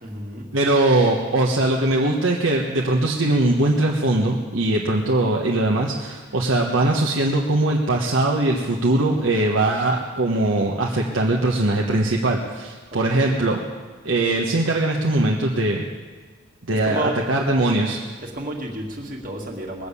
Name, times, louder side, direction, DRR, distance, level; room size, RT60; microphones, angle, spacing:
voice 1, 0.0-0.5 12.9-13.5 16.7-17.2 18.2-19.9, right 1 dB, 40° right, 0 dB, 2.1 m, -31 dB
voice 2, 0.5-13.6 14.0-15.8 16.7-17.0 17.3-18.0, right 2 dB, 80° right, -1 dB, 1.2 m, -21 dB
20.5 x 7.3 x 8.3 m, 1.5 s
head